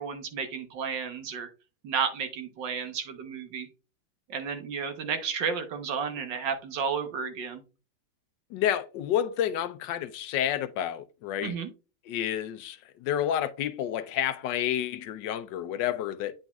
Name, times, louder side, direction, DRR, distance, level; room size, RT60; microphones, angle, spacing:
voice 1, 0.0-1.5 1.8-3.7 4.3-7.6 11.4-11.7, right 6 dB, 75° right, 1.7 m, -32 dB
voice 2, 8.5-11.5 12.1-16.3, left 10 dB, 75° left, 1.2 m, -30 dB
9.0 x 5.0 x 2.3 m
omnidirectional pair, 2.0 m